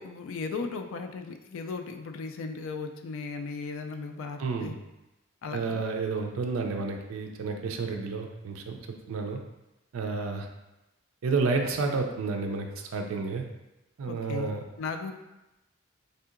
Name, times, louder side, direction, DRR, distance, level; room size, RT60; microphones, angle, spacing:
voice 1, 0.0-4.8 5.4-5.8 14.1-15.1, left 4 dB, 70° left, 6 dB, 0.3 m, -36 dB
voice 2, 4.4-4.8 5.5-8.8 9.1-9.4 9.9-10.5 11.2-13.4 14.0-14.6, right 4 dB, 90° right, 3 dB, 0.4 m, -30 dB
3.5 x 2.7 x 2.5 m, 0.97 s
head